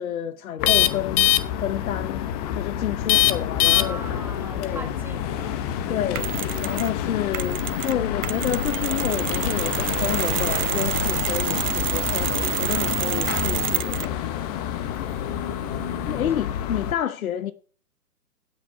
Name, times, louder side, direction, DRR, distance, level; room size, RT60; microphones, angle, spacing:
voice 1, 0.0-2.2 2.5-4.0 4.6-4.9 5.9-6.3 6.6-14.2 16.1-17.5, left 10 dB, 60° left, 0.9 m, -29 dB
sound 1, 0.6-16.9, left 11 dB, 25° left, 0.8 m, -26 dB
voice 2, 3.6-6.0 15.2-16.2, right 3 dB, 5° right, 1.3 m, -40 dB
Mechanisms, 6.2-7.0 7.3-14.2, right 12 dB, 55° right, 0.8 m, -29 dB
16.5 x 6.4 x 4.6 m
figure-of-eight pair, 125°, 48 cm